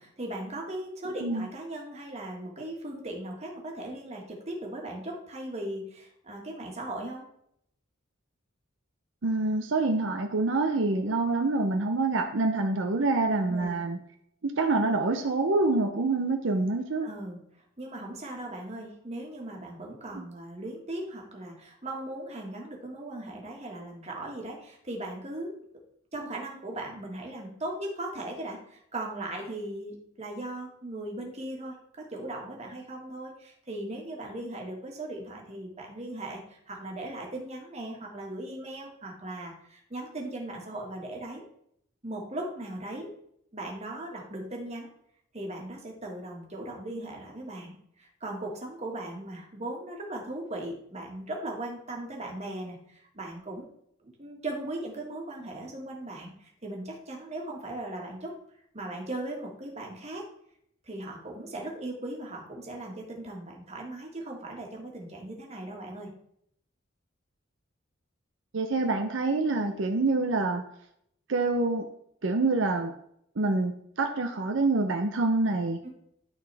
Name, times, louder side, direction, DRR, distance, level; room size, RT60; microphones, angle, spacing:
voice 1, 0.0-7.3 13.5-13.8 17.0-17.4 17.8-25.5 26.1-41.4 42.0-43.1 43.5-44.9 45.3-53.7 54.2-58.3 58.7-60.2 60.8-66.1 69.6-69.7 75.8-75.9, right 1 dB, 35° right, 0 dB, 1.7 m, -38 dB
voice 2, 9.2-14.0 14.4-17.1 68.5-70.6 71.3-71.9 72.2-72.9 73.4-75.8, right 3 dB, 65° right, 5 dB, 0.6 m, -26 dB
12.5 x 4.1 x 3.4 m, 0.71 s
head